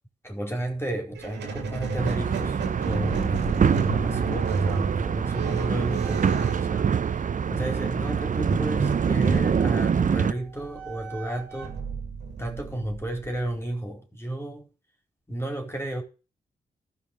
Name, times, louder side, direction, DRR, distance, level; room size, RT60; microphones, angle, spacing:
voice 1, 0.2-11.8 12.4-14.7 15.3-16.0, right 1 dB, 15° left, 4.5 m, -33 dB
Squeak, 1.2-7.5 8.4-13.6, right 4 dB, 80° right, 2.1 m, -31 dB
sound 1, 2.0-10.3, right 7 dB, 50° right, 0.7 m, -25 dB
13.0 x 5.6 x 6.7 m
supercardioid pair, 40°, 17 cm